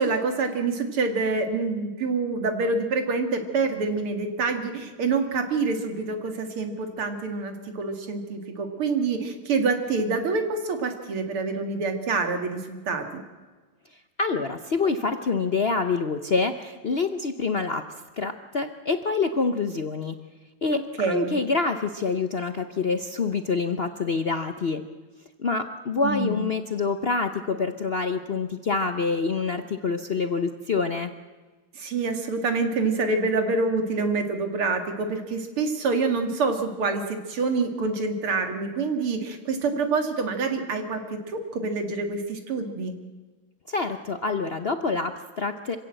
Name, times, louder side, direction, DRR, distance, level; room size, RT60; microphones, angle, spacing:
voice 1, 0.0-13.2 20.7-21.4 26.0-26.4 31.7-42.9, right 4 dB, 90° right, 6 dB, 3.0 m, -26 dB
voice 2, 14.2-17.9 18.2-20.2 20.6-24.8 25.4-31.1 43.7-45.8, left 4 dB, 75° left, 8 dB, 0.5 m, -26 dB
26.5 x 16.5 x 7.7 m, 1.3 s
omnidirectional pair, 2.3 m